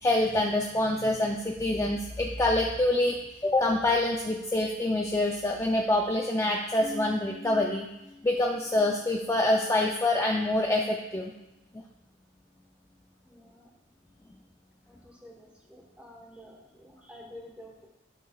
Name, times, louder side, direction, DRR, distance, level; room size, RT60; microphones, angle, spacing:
voice 1, 0.0-7.9 8.2-11.3, left 1 dB, 15° left, 0 dB, 0.4 m, -26 dB
voice 2, 13.2-13.7 14.8-17.9, left 1 dB, 5° right, -1 dB, 1.1 m, -50 dB
11.5 x 5.4 x 2.3 m, 0.97 s
head